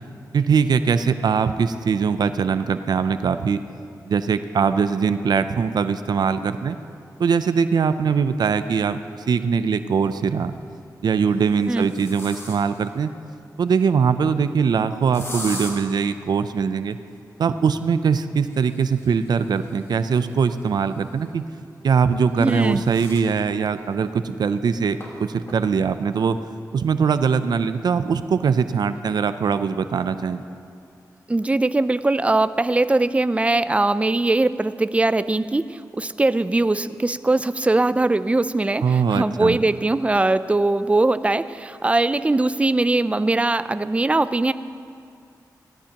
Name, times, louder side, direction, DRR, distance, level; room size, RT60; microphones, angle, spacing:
voice 1, 0.3-3.6 4.1-6.8 7.2-10.5 11.0-13.1 13.6-17.0 17.4-21.4 21.8-26.4 26.7-30.4 38.8-39.6, right 6 dB, 70° right, 11 dB, 0.5 m, -21 dB
sound 1, 10.5-10.7 11.3-12.9 15.1-15.7 18.3-21.0 22.0-23.3 23.8-23.9 24.2-24.3 25.0-25.1 25.5-25.9, left 1 dB, 40° left, 3.4 m, -39 dB
voice 2, 22.4-22.8 31.3-44.5, right 2 dB, 15° right, 14 dB, 0.4 m, -21 dB
17.5 x 14.5 x 2.9 m, 2.3 s
cardioid pair, 55°, 7 cm